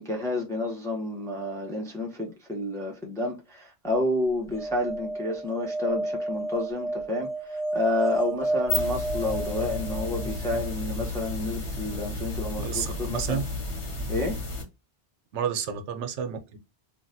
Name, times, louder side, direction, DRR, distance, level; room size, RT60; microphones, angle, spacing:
voice 1, 0.0-13.4 14.1-14.4, left 2 dB, 5° left, 0.5 m, -30 dB
sound 1, 4.5-10.7 13.0-13.1 13.2-13.3, right 1 dB, 35° left, 0.8 m, -31 dB
sound 2, 8.5-14.6, left 2 dB, 75° left, 1.5 m, -32 dB
voice 2, 12.6-13.4 15.3-16.6, right 8 dB, 80° right, 0.9 m, -30 dB
3.2 x 2.5 x 2.6 m
omnidirectional pair, 1.2 m